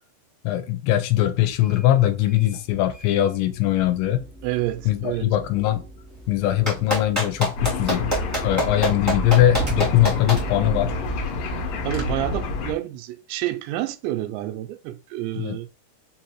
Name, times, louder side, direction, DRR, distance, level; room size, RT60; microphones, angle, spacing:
voice 1, 0.4-4.2 4.9-5.8 6.3-8.1 8.4-10.9 15.3-15.6, left 13 dB, 90° left, 2.8 m, -21 dB
sound 1, 1.4-11.3, right 5 dB, 55° right, 0.9 m, -40 dB
voice 2, 4.4-5.3 11.8-15.7, right 14 dB, 90° right, 2.8 m, -29 dB
Clapping, 6.7-10.4 11.9-12.0, equal, 20° right, 0.4 m, -24 dB
sound 2, 7.6-12.7, left 2 dB, 70° left, 2.2 m, -28 dB
6.4 x 2.7 x 2.9 m
omnidirectional pair, 5.0 m